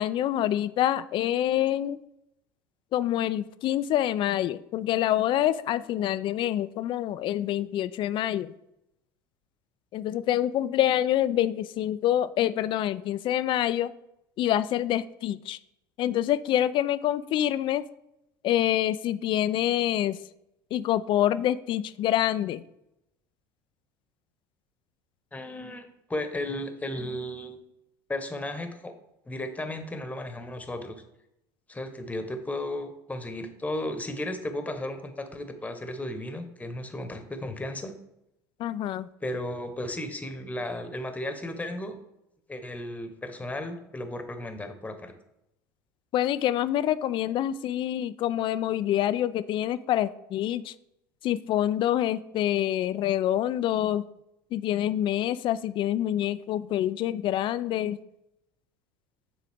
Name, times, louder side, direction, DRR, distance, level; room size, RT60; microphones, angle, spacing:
voice 1, 0.0-2.0 2.9-8.5 9.9-13.9 14.4-15.6 16.0-17.9 18.4-20.2 20.7-22.6 38.6-39.1 46.1-50.7 51.2-54.0 54.5-58.0, left 12 dB, 50° left, 15 dB, 0.4 m, -26 dB
voice 2, 25.3-27.6 28.1-28.9 29.3-31.0 31.7-37.9 39.2-42.0 42.5-45.1, left 1 dB, 15° left, 7 dB, 1.1 m, -34 dB
9.2 x 3.7 x 3.5 m, 0.83 s
hypercardioid pair, 80°, 11 cm